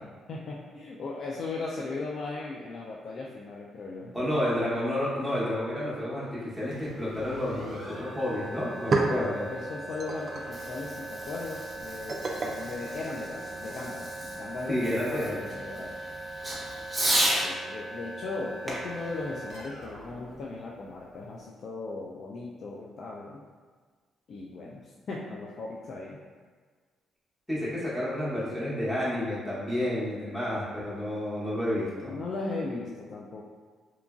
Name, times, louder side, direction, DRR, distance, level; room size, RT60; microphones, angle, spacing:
voice 1, 0.3-4.2 8.9-14.1 14.4-15.9 17.3-23.4 24.3-26.2 32.0-33.4, left 3 dB, 55° left, -4 dB, 0.3 m, -37 dB
voice 2, 4.1-9.4 14.7-15.5 27.5-32.1, left 1 dB, 5° left, -9 dB, 1.0 m, -30 dB
sound 1, 6.6-21.3, right 2 dB, 80° left, 1.0 m, -41 dB
sound 2, 8.6-13.8, right 3 dB, 40° right, 0.3 m, -34 dB
Fireworks, 10.3-17.5 18.7-20.3, right 1 dB, 15° right, 0.7 m, -34 dB
2.9 x 2.4 x 2.3 m, 1.5 s
cardioid pair, 90°, 0 cm